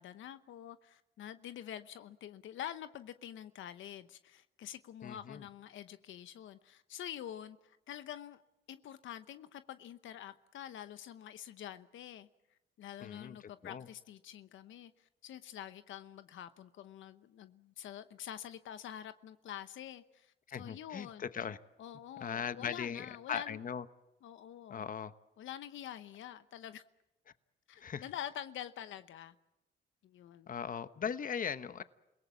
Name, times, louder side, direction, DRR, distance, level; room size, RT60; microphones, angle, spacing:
voice 1, 0.0-8.4 8.7-12.3 12.8-21.3 21.8-23.6 24.2-24.8 25.4-26.8 27.7-29.3 30.0-30.5, left 10 dB, 75° left, 0.9 m, -47 dB
voice 2, 5.0-5.4 13.0-13.9 20.5-21.6 22.2-23.8 24.7-25.1 27.8-28.1 30.5-31.8, left 7 dB, 45° left, 1.1 m, -39 dB
28.5 x 18.0 x 7.4 m
cardioid pair, 90°, 20 cm